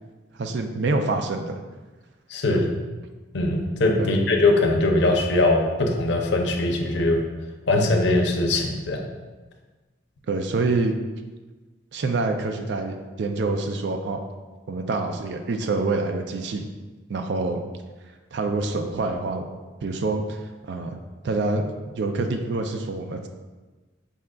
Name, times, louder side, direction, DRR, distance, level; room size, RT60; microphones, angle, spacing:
voice 1, 0.3-1.5 2.5-2.7 4.0-4.2 10.3-10.9 11.9-14.2 14.7-16.7 17.1-17.6 18.3-19.5 19.8-21.0 21.2-23.3, right 3 dB, 65° right, 6 dB, 0.4 m, -26 dB
voice 2, 2.3-2.7 3.3-7.2 7.7-9.0, left 2 dB, 65° left, 2 dB, 0.6 m, -21 dB
5.4 x 3.6 x 2.3 m, 1.3 s
head